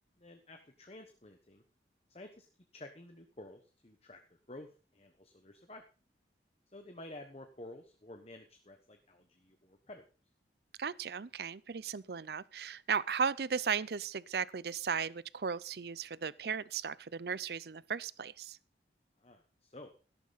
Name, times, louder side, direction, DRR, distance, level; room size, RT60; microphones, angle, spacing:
voice 1, 0.2-1.6 2.1-2.5 2.7-4.2 4.5-5.8 6.7-10.0 19.2-19.9, left 1 dB, 35° left, 1.1 m, -51 dB
voice 2, 10.8-18.6, right 6 dB, 60° right, 0.5 m, -36 dB
13.0 x 11.5 x 4.1 m
head